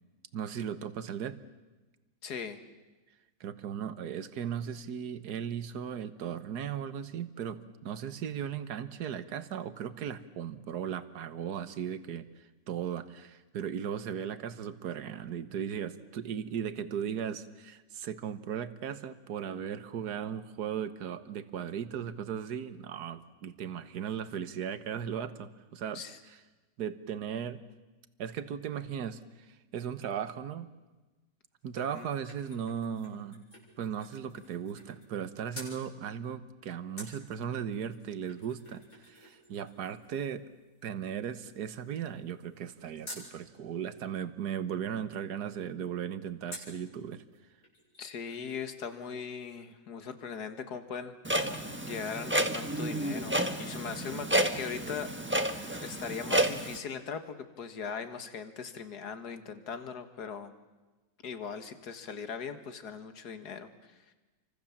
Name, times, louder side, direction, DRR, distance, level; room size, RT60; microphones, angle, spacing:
voice 1, 0.3-1.4 3.4-12.3 12.7-26.4 26.8-27.6 28.2-29.2 29.5-30.7 31.6-33.4 33.8-40.4 40.8-47.2, right 8 dB, 65° right, 12 dB, 1.7 m, -37 dB
voice 2, 2.2-2.6 25.9-26.2 31.8-32.1 48.0-51.1 51.8-54.3 54.6-55.1 55.8-60.5 61.2-63.7, left 6 dB, 60° left, 9 dB, 2.2 m, -39 dB
sound 1, 31.6-35.2 35.5-35.8 37.0-43.3 46.5-46.8 47.3-47.4 47.6-48.6 48.9-49.0, left 1 dB, 40° left, 8.0 m, -51 dB
Clock, 51.2-56.8, right 1 dB, 10° right, 1.1 m, -31 dB
30.0 x 25.0 x 7.3 m, 1.2 s
omnidirectional pair, 1.9 m